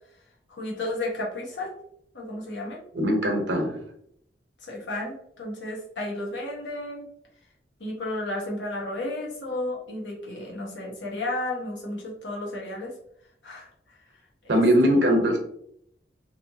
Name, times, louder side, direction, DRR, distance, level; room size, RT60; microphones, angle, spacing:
voice 1, 0.5-1.7 2.1-2.8 4.6-7.1 7.8-12.9 13.4-13.7 14.4-14.6, left 1 dB, 80° left, -3 dB, 1.1 m, -33 dB
voice 2, 2.9-3.8 14.5-15.4, equal, 70° right, 3 dB, 0.8 m, -21 dB
3.1 x 2.8 x 2.7 m, 0.71 s
head